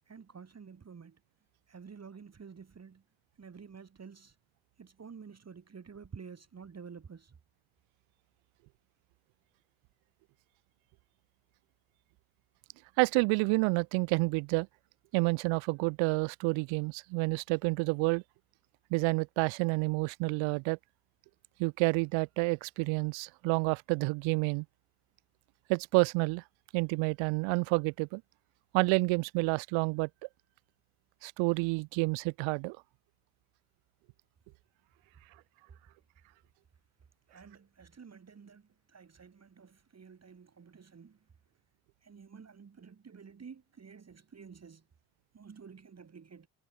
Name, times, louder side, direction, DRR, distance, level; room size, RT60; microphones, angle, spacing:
voice 1, 0.1-1.2 1.7-3.0 3.4-4.4 4.8-7.3 37.3-41.2 42.0-44.8 45.3-46.5, right 6 dB, 30° right, 2.5 m, -50 dB
voice 2, 13.0-14.7 15.1-18.2 18.9-20.8 21.6-24.6 25.7-26.4 26.7-28.2 28.7-30.1 31.2-32.8, right 28 dB, 75° right, 0.6 m, -29 dB
supercardioid pair, 65°, 48 cm